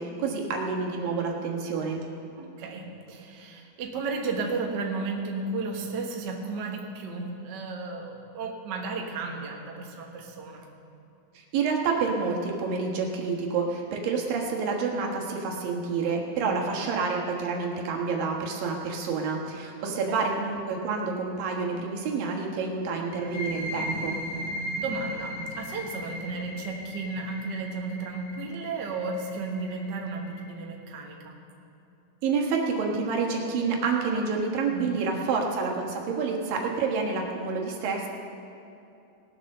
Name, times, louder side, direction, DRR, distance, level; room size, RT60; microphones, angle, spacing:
voice 1, 0.0-2.0 11.5-24.2 32.2-38.1, right 4 dB, 85° right, 0 dB, 3.2 m, -28 dB
voice 2, 2.4-10.7 16.4-16.8 19.8-20.3 24.8-31.4 34.7-35.2, right 3 dB, 55° right, 1 dB, 1.2 m, -34 dB
sound 1, 23.2-30.6, equal, 55° left, 1.0 m, -37 dB
19.0 x 7.1 x 6.6 m, 2.8 s
omnidirectional pair, 3.9 m